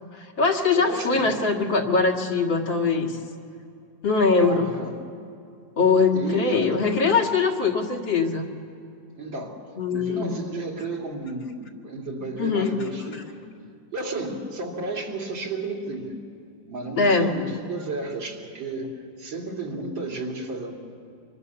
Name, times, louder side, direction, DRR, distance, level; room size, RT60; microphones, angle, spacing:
voice 1, 0.2-3.2 4.0-4.7 5.8-8.5 9.8-10.4 12.4-12.7 17.0-17.5, left 4 dB, 90° left, 1 dB, 2.8 m, -22 dB
voice 2, 0.7-1.4 4.4-5.0 6.1-6.7 9.2-9.6 9.9-13.3 13.9-16.2 16.7-20.7, right 3 dB, 85° right, -1 dB, 3.5 m, -32 dB
27.5 x 25.0 x 7.0 m, 2.5 s
omnidirectional pair, 2.0 m